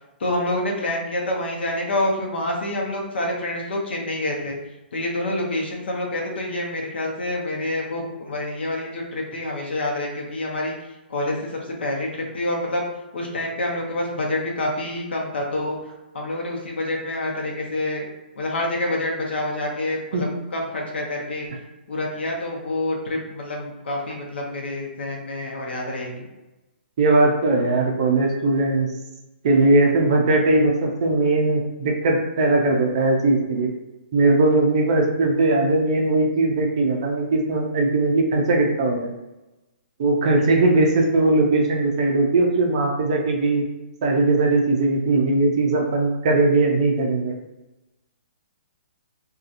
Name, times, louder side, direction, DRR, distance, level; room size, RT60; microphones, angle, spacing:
voice 1, 0.2-4.6 4.9-10.7 11.1-12.8 13.1-15.8 16.1-18.1 18.4-21.5 21.9-26.2 40.4-40.6, left 1 dB, 70° left, -1 dB, 0.8 m, -27 dB
voice 2, 27.0-28.9 29.4-33.7 34.1-39.1 40.0-43.7 44.0-47.4, right 2 dB, 35° right, 1 dB, 0.4 m, -19 dB
2.8 x 2.3 x 2.5 m, 1.0 s
hypercardioid pair, 170°, 6 cm